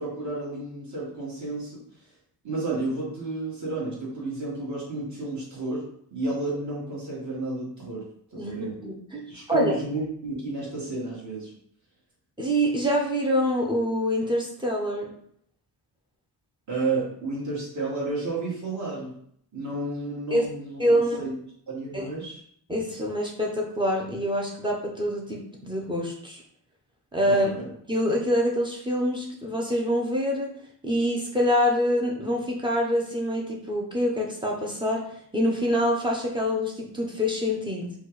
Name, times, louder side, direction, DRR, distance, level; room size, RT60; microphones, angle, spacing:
voice 1, 0.0-1.7 2.4-5.8 6.1-8.1 8.3-8.7 9.3-11.5 16.7-19.1 19.5-20.8 21.2-21.3 21.7-22.4 27.5-27.6, right 2 dB, 40° right, -6 dB, 1.8 m, -31 dB
voice 2, 8.4-9.7 12.4-15.1 20.3-20.5 20.8-21.2 21.9-22.1 22.7-26.4 27.1-27.5 27.9-30.5 30.8-35.1 35.3-37.9, equal, 10° right, -1 dB, 0.7 m, -25 dB
4.4 x 2.4 x 4.7 m, 0.66 s
wide cardioid pair, 155°, 42 cm